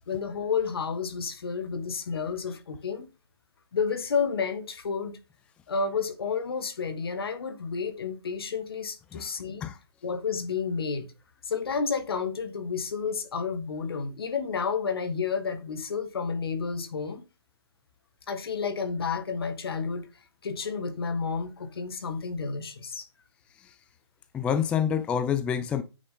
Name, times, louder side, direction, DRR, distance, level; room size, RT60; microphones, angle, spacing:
voice 1, 0.1-3.1 3.7-5.2 5.7-9.7 10.0-11.1 11.4-17.2 18.3-20.1 20.4-23.1, left 5 dB, 65° left, 1.7 m, -31 dB
voice 2, 24.3-25.8, left 8 dB, 10° left, 0.4 m, -27 dB
8.4 x 6.7 x 3.7 m
figure-of-eight pair, 140°, 14 cm